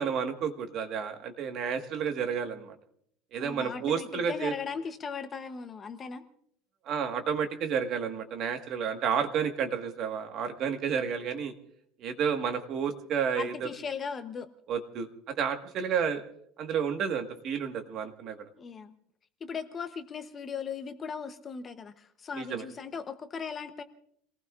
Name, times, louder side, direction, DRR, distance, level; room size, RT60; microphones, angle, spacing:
voice 1, 0.0-2.7 3.3-4.5 6.8-11.5 12.0-13.7 14.7-16.2 16.6-18.4 22.3-22.6, right 7 dB, 35° right, 6 dB, 1.4 m, -31 dB
voice 2, 3.4-6.2 13.4-14.5 18.6-18.9 19.4-23.8, left 6 dB, 20° left, 8 dB, 0.7 m, -38 dB
30.0 x 19.0 x 2.4 m, 0.68 s
cardioid pair, 180°, 0 cm